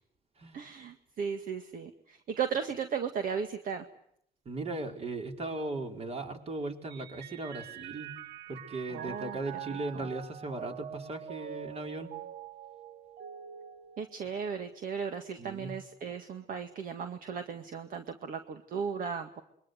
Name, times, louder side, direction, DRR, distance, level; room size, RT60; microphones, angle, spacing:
voice 1, 0.5-3.9 8.9-9.4 9.7-10.0 14.0-19.4, right 6 dB, 55° right, 7 dB, 2.0 m, -36 dB
voice 2, 4.4-8.2 8.5-12.1 15.4-15.7, right 2 dB, 35° right, 4 dB, 4.6 m, -38 dB
Mallet percussion, 6.9-14.6, right 9 dB, 70° right, 1.2 m, -45 dB
27.5 x 23.5 x 8.0 m, 0.71 s
cardioid pair, 110°, 17 cm